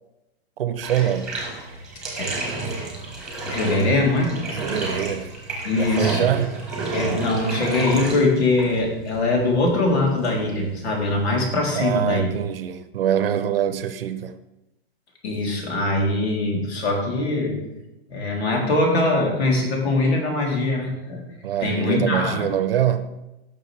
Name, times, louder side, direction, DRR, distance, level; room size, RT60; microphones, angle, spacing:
voice 1, 0.6-1.4 4.5-5.3 5.7-6.6 11.7-14.4 21.4-23.1, right 10 dB, 65° right, 12 dB, 0.8 m, -24 dB
Bathtub (filling or washing), 0.8-12.4, right 3 dB, ahead, 1.3 m, -31 dB
voice 2, 3.5-4.4 5.6-6.2 6.9-12.3 15.2-17.6 18.1-21.2 21.6-22.5, left 2 dB, 90° left, -1 dB, 3.4 m, -22 dB
16.0 x 6.4 x 3.4 m, 0.99 s
hypercardioid pair, 175°, 31 cm